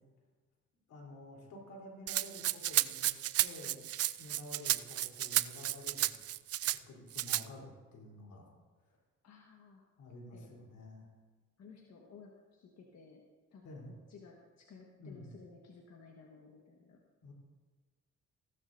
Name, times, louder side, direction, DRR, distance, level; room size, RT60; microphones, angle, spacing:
voice 1, 0.9-3.1 3.4-3.9 4.2-6.3 6.9-8.5 10.0-11.1 13.6-13.9 15.0-15.3 17.2-17.3, left 1 dB, 85° left, -1 dB, 3.7 m, -50 dB
Rattle (instrument), 2.1-6.8 7.1-7.4, right 13 dB, 55° right, 0.4 m, -32 dB
voice 2, 9.2-9.8 10.3-10.5 11.6-13.2 13.5-17.0, left 5 dB, 60° left, 0 dB, 1.5 m, -56 dB
16.0 x 14.0 x 2.7 m, 1.3 s
cardioid pair, 90°, 30 cm